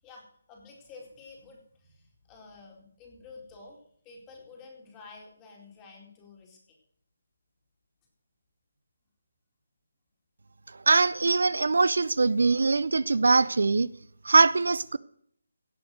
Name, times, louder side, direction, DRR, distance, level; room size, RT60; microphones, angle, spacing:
voice 1, 0.0-3.8 4.0-6.8, left 4 dB, 20° left, 4.4 m, -50 dB
voice 2, 10.9-13.9 14.2-15.0, right 3 dB, 70° right, 0.6 m, -22 dB
17.0 x 7.8 x 6.4 m
figure-of-eight pair, 155°, 0 cm